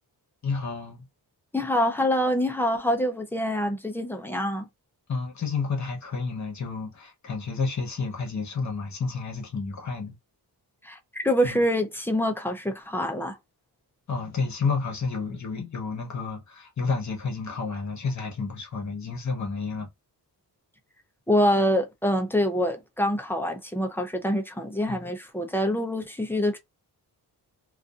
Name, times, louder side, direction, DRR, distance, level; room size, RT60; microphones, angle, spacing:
voice 1, 0.4-1.0 5.1-10.2 11.4-11.6 14.1-19.9 24.9-25.1, left 4 dB, 45° left, 0.9 m, -30 dB
voice 2, 1.5-4.7 10.8-13.4 21.3-26.6, equal, 5° left, 0.3 m, -25 dB
2.6 x 2.4 x 2.3 m
wide cardioid pair, 170°, 40 cm